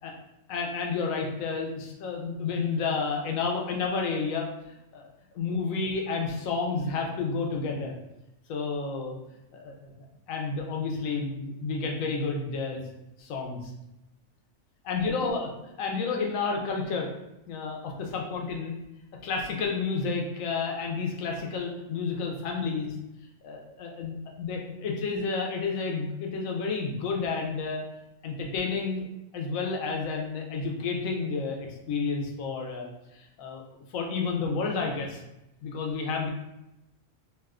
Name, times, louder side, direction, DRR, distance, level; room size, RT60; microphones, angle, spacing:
voice 1, 0.5-4.5 4.9-5.1 5.3-7.9 8.5-9.1 9.5-9.9 10.3-12.8 13.2-13.7 14.8-15.5 15.8-17.1 17.5-18.7 19.2-23.0 23.4-27.8 28.2-29.1 29.3-33.6 33.9-35.2 35.6-36.3, left 4 dB, 80° left, 1 dB, 1.0 m, -30 dB
2.7 x 2.2 x 3.5 m, 0.92 s
omnidirectional pair, 1.4 m